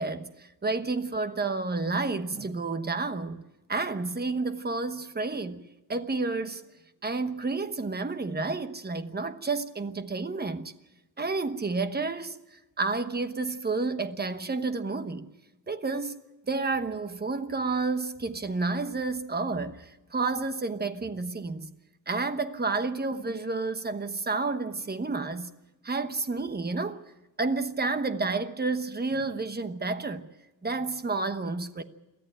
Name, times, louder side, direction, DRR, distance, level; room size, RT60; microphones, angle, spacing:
voice 1, 0.0-3.4 3.7-5.6 5.9-6.6 7.0-10.7 11.2-15.3 15.7-16.2 16.5-21.7 22.1-25.5 25.8-27.0 27.4-30.3 30.6-31.8, right 3 dB, 25° right, 1.1 m, -30 dB
23.0 x 14.5 x 9.0 m
wide cardioid pair, 165°, 35 cm